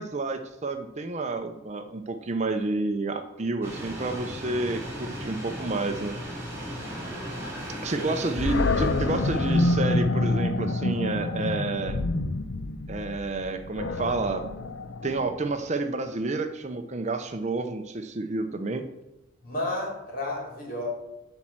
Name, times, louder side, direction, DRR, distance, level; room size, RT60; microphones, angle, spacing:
voice 1, 0.0-6.1 7.8-12.0 12.9-14.4 15.0-18.8, right 2 dB, 35° right, 7 dB, 0.6 m, -30 dB
sound 1, 3.6-9.8, equal, 10° right, 3.5 m, -37 dB
voice 2, 7.8-8.2 19.4-20.9, left 1 dB, 45° left, -2 dB, 3.3 m, -32 dB
Animal, 8.4-15.5, left 2 dB, 65° left, 0.6 m, -27 dB
10.5 x 4.4 x 7.3 m, 0.94 s
head